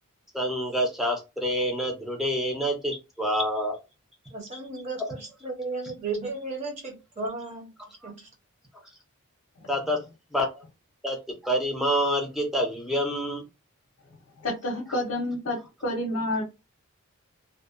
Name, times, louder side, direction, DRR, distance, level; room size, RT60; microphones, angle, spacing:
voice 1, 0.3-3.8 8.0-8.1 9.7-10.0 10.3-10.6 11.0-13.5, equal, ahead, 0.5 m, -27 dB
voice 2, 4.3-8.3, right 3 dB, 30° right, 0.8 m, -35 dB
voice 3, 14.4-16.4, left 1 dB, 60° left, 0.6 m, -29 dB
2.6 x 2.2 x 2.4 m
head